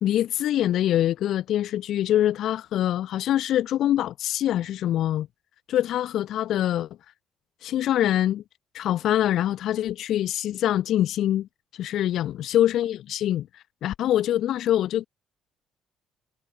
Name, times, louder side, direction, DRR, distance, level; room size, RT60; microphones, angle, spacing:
voice 1, 0.0-5.3 5.7-6.9 7.6-8.4 8.7-11.5 11.7-13.5 13.8-15.1, left 12 dB, 55° left, 1.3 m, -24 dB
figure-of-eight pair, 45°, 0 cm